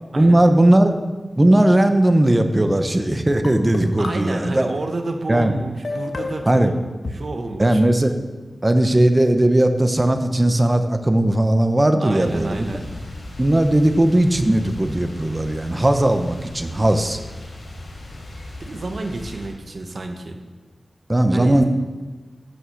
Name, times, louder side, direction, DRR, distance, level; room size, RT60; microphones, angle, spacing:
voice 1, 0.2-0.9 1.4-4.7 5.3-5.5 6.5-6.7 7.6-8.2 8.6-12.7 13.4-17.2 21.1-21.6, right 1 dB, 20° right, 7 dB, 0.9 m, -17 dB
sound 1, 2.8-2.9 3.4-4.9 5.8-7.1, left 3 dB, 55° left, 1.2 m, -32 dB
voice 2, 4.0-7.8 12.0-12.8 18.6-20.4 21.3-21.6, right 2 dB, 55° right, 4 dB, 1.3 m, -30 dB
sound 2, 12.2-19.5, left 1 dB, 80° left, 3.5 m, -37 dB
11.0 x 6.1 x 6.5 m, 1.3 s
wide cardioid pair, 95°, 0 cm